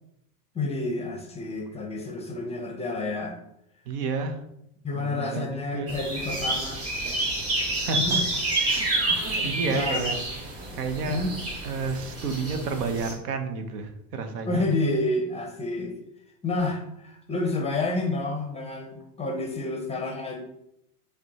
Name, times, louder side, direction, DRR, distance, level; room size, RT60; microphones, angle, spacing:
voice 1, 0.5-3.4 4.8-6.9 7.8-8.2 9.3-10.1 11.1-11.3 14.4-15.9 16.4-20.4, left 2 dB, 15° left, 2 dB, 0.4 m, -29 dB
voice 2, 3.9-4.4 4.9-5.9 7.7-8.2 8.7-10.2 10.8-11.2 11.6-14.6, right 5 dB, 90° right, 6 dB, 0.7 m, -31 dB
sound 1, 5.9-13.1, right 2 dB, 30° right, 1.1 m, -29 dB
5.0 x 2.2 x 2.8 m, 0.79 s
supercardioid pair, 110°, 46 cm